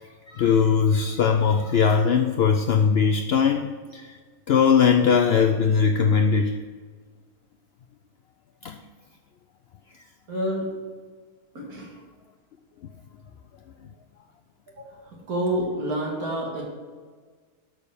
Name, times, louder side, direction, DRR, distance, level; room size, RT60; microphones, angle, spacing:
voice 1, 0.3-4.2 4.5-6.6 8.6-8.8, left 6 dB, 75° left, 5 dB, 0.5 m, -20 dB
voice 2, 10.3-10.7 11.5-11.9 14.8-15.0 15.3-16.6, right 1 dB, 75° right, -2 dB, 2.4 m, -28 dB
6.7 x 6.2 x 7.0 m, 1.6 s
omnidirectional pair, 1.6 m